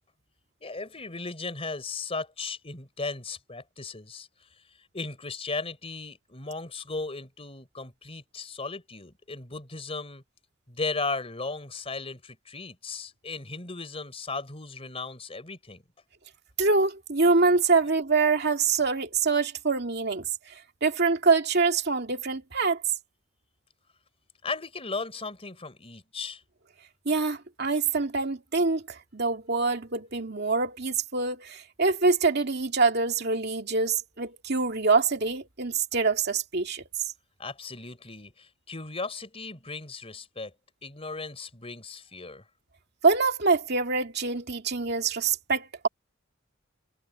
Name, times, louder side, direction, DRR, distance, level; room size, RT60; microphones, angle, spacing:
voice 1, 0.6-4.3 4.9-10.2 10.7-15.8 24.4-26.4 37.4-40.5 40.8-42.4, left 3 dB, 30° left, 3.9 m, -36 dB
voice 2, 16.6-22.8 27.1-37.1 43.0-45.9, right 4 dB, 60° right, 2.4 m, -25 dB
head